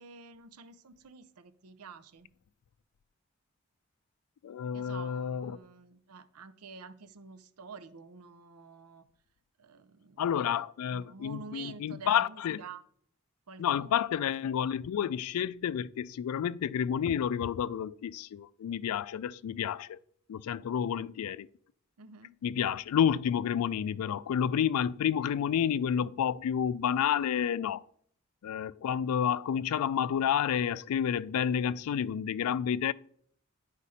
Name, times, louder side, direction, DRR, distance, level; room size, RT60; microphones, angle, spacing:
voice 1, 0.0-2.3 4.7-9.1 9.6-10.3 10.9-12.8 13.5-14.0 22.0-22.4, right 5 dB, 90° right, 0.6 m, -49 dB
voice 2, 4.4-5.6 10.2-12.6 13.6-20.0 20.3-21.5 22.4-27.8 28.4-32.9, left 8 dB, 80° left, 0.3 m, -30 dB
9.9 x 5.0 x 4.1 m
head